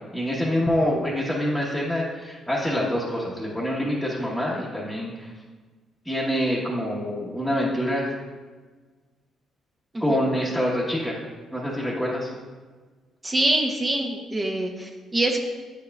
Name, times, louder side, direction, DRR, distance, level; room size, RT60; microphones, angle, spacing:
voice 1, 0.1-5.3 6.0-8.2 10.0-11.2 11.5-12.3, equal, ahead, -6 dB, 1.0 m, -26 dB
voice 2, 13.2-15.4, right 1 dB, 20° right, 2 dB, 0.7 m, -25 dB
8.2 x 5.5 x 2.3 m, 1.4 s
cardioid pair, 90°, 0 cm